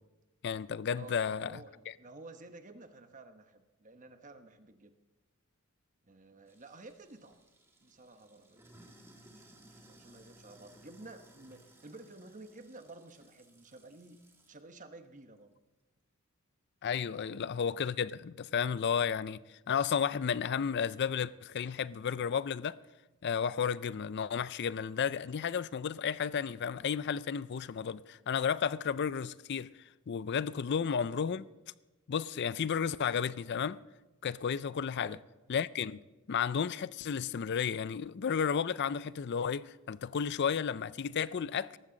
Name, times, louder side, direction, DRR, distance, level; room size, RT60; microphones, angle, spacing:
voice 1, 0.4-1.5 16.8-19.4 19.7-22.8 23.2-29.7 30.1-31.4 32.1-33.8 34.2-35.2 35.5-36.0 36.3-41.8, left 7 dB, 50° left, 0.4 m, -32 dB
voice 2, 1.0-4.9 6.0-7.4 7.8-8.7 9.3-15.5 17.3-17.6 30.7-30.9 35.0-35.2, right 2 dB, 35° right, 1.1 m, -52 dB
Sink (filling or washing), 6.5-14.6, right 1 dB, 10° right, 2.0 m, -60 dB
18.5 x 15.0 x 3.9 m
head